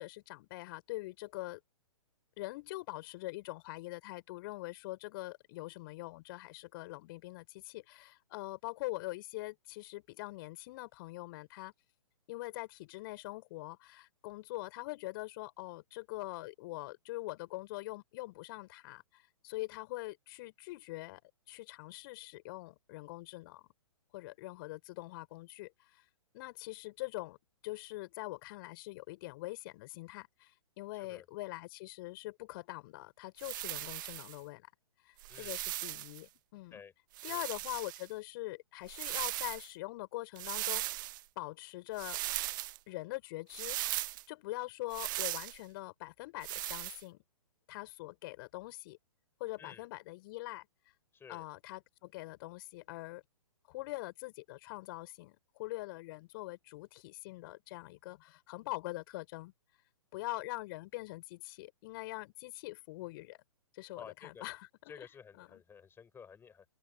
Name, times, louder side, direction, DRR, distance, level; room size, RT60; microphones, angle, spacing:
voice 1, 0.0-1.6 2.4-11.7 12.3-21.2 21.5-23.7 24.1-26.0 26.3-27.4 27.6-34.7 35.0-36.8 37.2-40.8 41.3-42.2 42.9-43.8 44.3-47.2 47.7-49.0 49.4-50.7 51.3-53.2 53.7-59.5 60.1-63.4 63.7-65.1 65.4-65.6, left 20 dB, 40° left, 6.9 m, -43 dB
voice 2, 30.9-31.3 35.3-35.6 36.7-36.9 37.3-37.4 49.6-49.8 51.1-51.4 63.9-64.4 64.9-66.6, left 6 dB, 10° left, 6.5 m, -53 dB
sound 1, 33.4-34.4 35.2-36.2 37.1-38.1 38.9-39.7 40.4-41.2 42.0-42.8 43.5-44.2 44.9-45.6 46.4-47.0, right 17 dB, 35° right, 0.5 m, -38 dB
open air
figure-of-eight pair, 120°, 18 cm